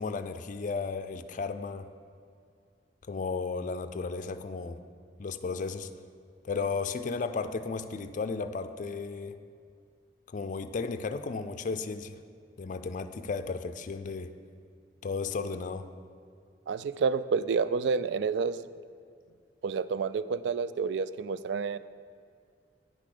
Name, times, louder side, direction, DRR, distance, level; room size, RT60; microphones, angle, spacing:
voice 1, 0.0-1.9 3.1-4.8 5.2-5.9 6.5-9.4 10.3-12.2 12.6-14.3 15.0-15.9, left 4 dB, 45° left, 9 dB, 0.4 m, -34 dB
voice 2, 16.7-18.6 19.6-21.8, right 5 dB, 75° right, 15 dB, 0.3 m, -29 dB
9.0 x 6.1 x 6.5 m, 2.3 s
head